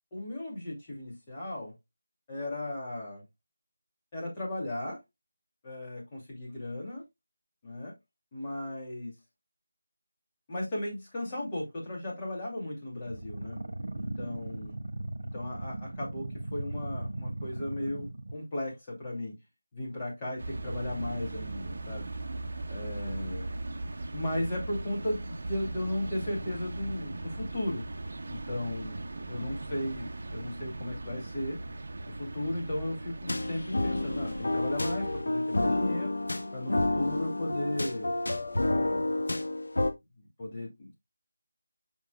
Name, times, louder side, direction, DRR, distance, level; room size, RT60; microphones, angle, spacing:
voice 1, 0.1-1.7 2.3-3.2 4.1-5.0 5.6-7.0 7.6-7.9 8.3-9.1 10.5-13.6 13.9-14.8 15.2-19.4 19.7-22.1 22.7-23.5 24.1-27.8 28.3-29.0 29.3-31.6 32.1-36.2 36.5-38.1 38.5-39.0 40.2-40.9, left 1 dB, 15° left, 2.6 m, -36 dB
sound 1, 13.1-18.3, right 1 dB, 65° right, 1.5 m, -37 dB
sound 2, 20.4-35.2, right 2 dB, 45° right, 1.0 m, -39 dB
sound 3, 33.3-39.9, left 2 dB, 75° left, 1.2 m, -30 dB
7.7 x 5.7 x 2.3 m
figure-of-eight pair, 175°, 0 cm